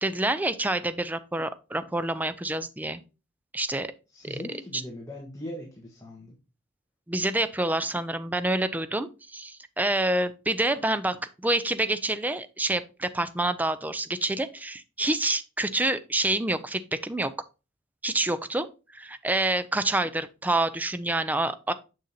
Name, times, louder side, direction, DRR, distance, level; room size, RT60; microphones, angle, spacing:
voice 1, 0.0-3.0 3.5-3.9 4.7-4.8 7.1-17.3 18.0-21.7, right 2 dB, 10° right, 0.4 m, -27 dB
voice 2, 4.1-6.4, left 1 dB, 15° left, 1.3 m, -40 dB
6.5 x 6.5 x 2.7 m
head